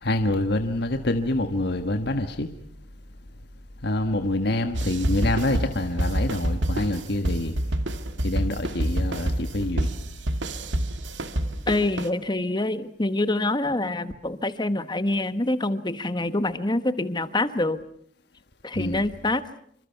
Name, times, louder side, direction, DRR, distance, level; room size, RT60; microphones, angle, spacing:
voice 1, 0.0-2.5 3.8-7.5 8.2-9.9 18.7-19.1, left 1 dB, 60° left, 6 dB, 1.5 m, -26 dB
sound 1, 4.7-12.1, right 1 dB, 80° right, 2.1 m, -27 dB
voice 2, 11.7-17.8 18.6-19.4, left 2 dB, 25° left, 12 dB, 1.3 m, -26 dB
28.0 x 25.5 x 5.9 m, 0.65 s
head